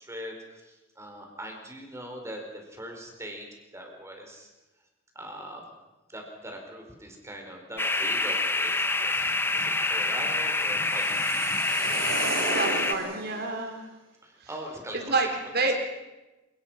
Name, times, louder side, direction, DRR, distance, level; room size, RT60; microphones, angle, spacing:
voice 1, 0.0-3.5 3.7-4.5 5.1-5.7 6.1-11.7 14.2-15.2 15.5-15.6, equal, 15° right, 2 dB, 5.0 m, -41 dB
sound 1, 7.7-13.0, left 1 dB, 40° left, 7.3 m, -48 dB
sound 2, 7.8-12.9, left 2 dB, 10° left, 1.0 m, -27 dB
sound 3, 10.3-13.5, right 3 dB, 70° right, 5.3 m, -34 dB
voice 2, 12.5-13.9 14.4-14.5 15.1-15.8, right 3 dB, 50° right, 3 dB, 4.0 m, -28 dB
28.5 x 18.5 x 6.0 m, 1.1 s
head